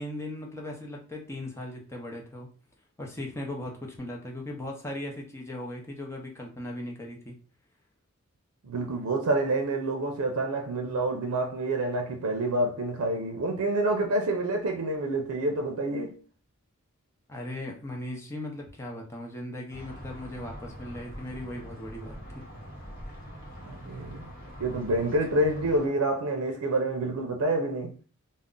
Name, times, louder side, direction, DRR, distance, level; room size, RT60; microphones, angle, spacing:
voice 1, 0.0-2.5 3.0-7.3 17.3-22.4, left 1 dB, 10° left, 0.6 m, -38 dB
voice 2, 8.6-16.2 23.7-24.3 24.6-27.9, right 2 dB, 85° right, 0.5 m, -28 dB
sound 1, 19.7-25.9, equal, 40° left, 0.8 m, -43 dB
2.4 x 2.0 x 3.7 m
head